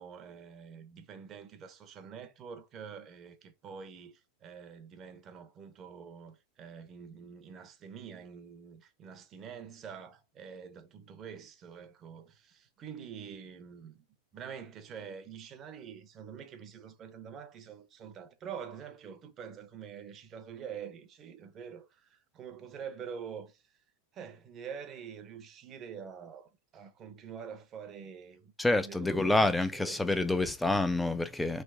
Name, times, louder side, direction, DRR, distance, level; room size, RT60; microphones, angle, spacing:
voice 1, 0.0-14.0 14.3-23.6 24.1-30.3, right 7 dB, 25° right, 0.7 m, -46 dB
voice 2, 28.6-31.6, left 2 dB, 5° left, 0.4 m, -28 dB
3.3 x 3.0 x 4.6 m
supercardioid pair, 165°, 0 cm